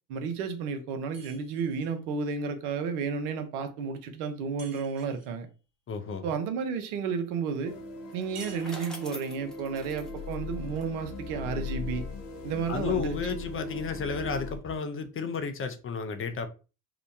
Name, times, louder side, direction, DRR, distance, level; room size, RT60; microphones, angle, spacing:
voice 1, 0.1-5.5 6.2-7.8 8.1-12.1 12.4-13.2, right 5 dB, 75° right, 0.7 m, -32 dB
sound 1, 1.1-2.0 4.6-5.4 8.3-9.3, right 4 dB, 35° right, 1.5 m, -50 dB
voice 2, 5.9-6.2 12.7-16.5, left 5 dB, 30° left, 0.5 m, -32 dB
sound 2, 7.7-14.6, left 3 dB, 85° left, 0.6 m, -39 dB
Bicycle, 8.0-11.3, equal, ahead, 0.8 m, -46 dB
2.8 x 2.1 x 2.6 m
hypercardioid pair, 55°, 45 cm